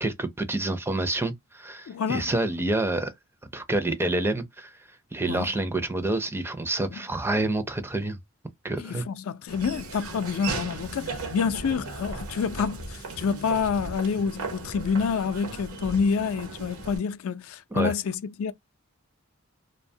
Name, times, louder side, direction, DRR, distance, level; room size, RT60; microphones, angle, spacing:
voice 1, 0.0-3.1 3.5-4.7 5.1-8.2 8.6-9.0 17.7-17.9, right 2 dB, 10° right, 0.4 m, -28 dB
voice 2, 1.9-2.3 5.3-5.5 8.8-18.5, left 6 dB, 70° left, 0.4 m, -28 dB
Laughter / Walk footsteps, 9.5-17.0, right 3 dB, 80° right, 0.8 m, -37 dB
2.7 x 2.1 x 2.6 m
head